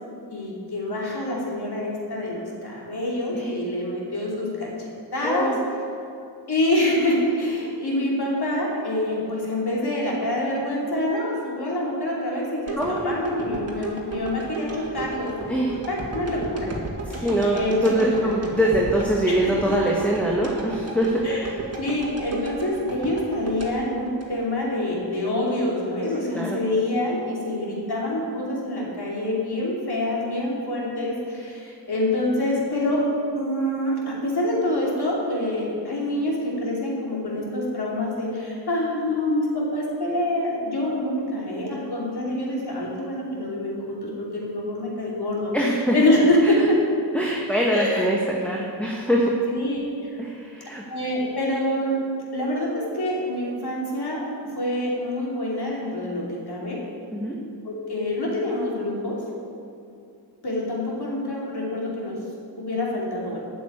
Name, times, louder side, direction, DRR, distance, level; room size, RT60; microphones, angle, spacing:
voice 1, 0.3-4.7 5.1-5.5 6.5-16.7 17.1-18.3 19.3-19.5 21.2-21.5 21.8-33.1 33.3-45.5 45.9-46.8 47.7-48.1 49.5-49.8 50.9-52.0 52.3-56.8 57.6-59.2 60.4-62.2 62.6-63.4, left 1 dB, 60° left, -4 dB, 3.1 m, -26 dB
voice 2, 5.2-5.6 12.8-13.1 15.5-15.7 17.2-21.2 26.3-26.6 45.5-45.9 46.4-46.5 47.1-49.3 50.2-50.8 57.1-57.4, right 1 dB, 5° left, -3 dB, 1.4 m, -23 dB
sound 1, 12.7-24.9 25.3-25.4, right 3 dB, 35° right, 2.0 m, -35 dB
8.8 x 7.0 x 8.7 m, 2.5 s
wide cardioid pair, 80°, 44 cm